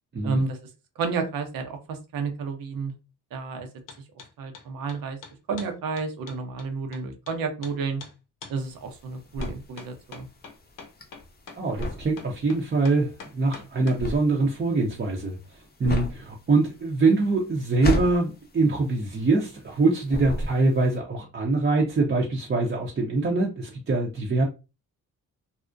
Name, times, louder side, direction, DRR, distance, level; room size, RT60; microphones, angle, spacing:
voice 1, 0.2-0.6 1.0-2.9 3.3-3.7 4.4-5.2 5.5-8.0 8.5-10.3, right 4 dB, 80° right, 0.7 m, -31 dB
sound 1, 3.9-4.3 4.5-7.4 7.6-7.7 8.0-8.1 8.4-8.6 9.4-14.0, left 5 dB, 65° left, 0.7 m, -43 dB
sound 2, 8.6-19.8 20.1-20.9, left 1 dB, 30° left, 0.6 m, -32 dB
voice 2, 11.6-15.4 15.8-24.4, right 3 dB, 30° right, 0.6 m, -24 dB
2.4 x 2.1 x 2.4 m
cardioid pair, 60°, 34 cm